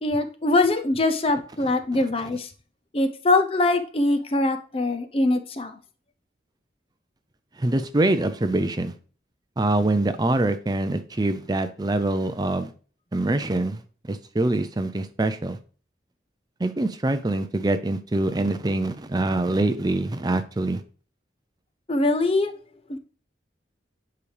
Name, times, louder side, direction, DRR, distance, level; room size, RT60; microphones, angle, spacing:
voice 1, 0.0-2.5 2.9-5.8 21.9-22.5 22.9-23.0, left 2 dB, 30° left, 0.6 m, -23 dB
voice 2, 7.6-8.9 9.6-12.7 13.1-13.8 14.1-15.6 16.6-20.8, right 2 dB, 20° right, 0.5 m, -24 dB
9.5 x 5.0 x 3.3 m
head